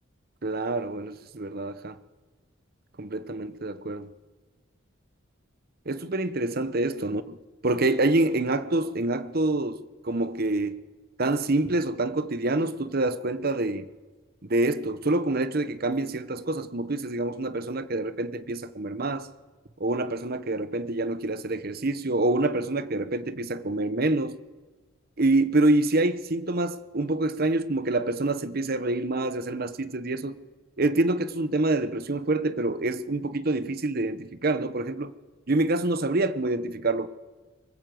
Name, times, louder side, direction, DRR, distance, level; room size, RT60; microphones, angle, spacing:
voice 1, 0.4-2.0 3.0-4.1 5.9-7.2 7.6-10.8 11.2-13.9 14.4-19.3 19.8-24.4 25.2-30.4 30.8-35.1 35.5-37.1, right 2 dB, 50° right, 0.9 m, -26 dB
23.5 x 21.0 x 7.8 m
head